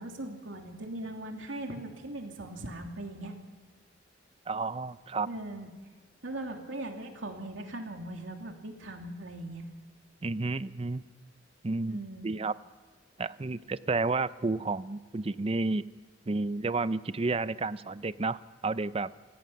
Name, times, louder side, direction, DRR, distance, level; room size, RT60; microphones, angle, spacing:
voice 1, 0.0-3.3 5.3-5.7 6.2-9.7 11.8-12.3, right 1 dB, 90° right, 3 dB, 2.8 m, -39 dB
voice 2, 4.5-5.3 10.2-11.0 11.6-12.5 13.2-15.8 16.3-19.1, right 3 dB, 30° right, 15 dB, 0.5 m, -31 dB
28.5 x 17.0 x 5.7 m, 1.5 s
head